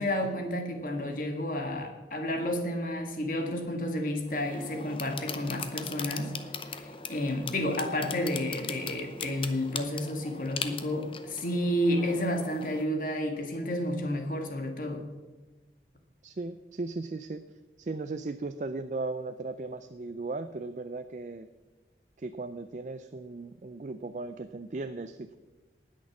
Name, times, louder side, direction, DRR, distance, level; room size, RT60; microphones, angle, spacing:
voice 1, 0.0-6.3 6.8-15.1, left 1 dB, 50° left, 4 dB, 1.7 m, -31 dB
sound 1, 4.3-12.9, left 6 dB, 30° left, 0.7 m, -40 dB
voice 2, 16.2-17.4 17.8-21.5 22.2-25.4, right 3 dB, 40° right, 10 dB, 0.4 m, -37 dB
19.0 x 6.6 x 6.0 m, 1.2 s
head